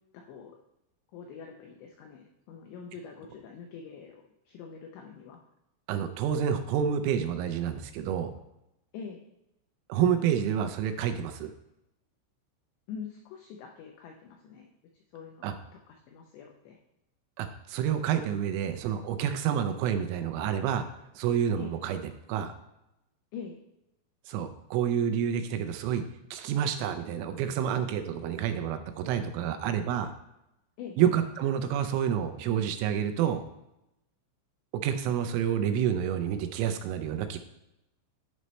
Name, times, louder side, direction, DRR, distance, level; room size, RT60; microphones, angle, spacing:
voice 1, 0.1-0.6 1.1-5.4 8.9-9.2 12.9-15.5 15.9-16.8 21.6-21.8 23.3-23.6 30.8-31.0, left 6 dB, 85° left, 2 dB, 2.5 m, -44 dB
voice 2, 5.9-8.3 9.9-11.5 15.4-15.5 17.4-20.9 21.2-22.0 22.3-22.5 24.3-26.0 26.3-30.1 31.0-33.4 34.8-37.4, right 9 dB, 85° right, 9 dB, 3.0 m, -28 dB
11.0 x 5.3 x 3.1 m, 0.88 s
omnidirectional pair, 5.9 m